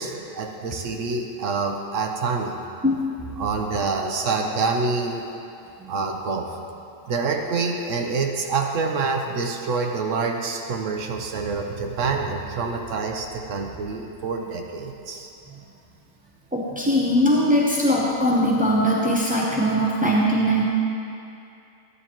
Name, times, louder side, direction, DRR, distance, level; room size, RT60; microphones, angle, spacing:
voice 1, 0.0-2.6 3.4-5.2 5.9-6.5 7.1-15.3, right 4 dB, 65° right, 3 dB, 1.0 m, -26 dB
voice 2, 16.5-20.7, equal, 10° right, -5 dB, 0.4 m, -20 dB
13.5 x 9.7 x 2.9 m, 2.6 s
omnidirectional pair, 1.4 m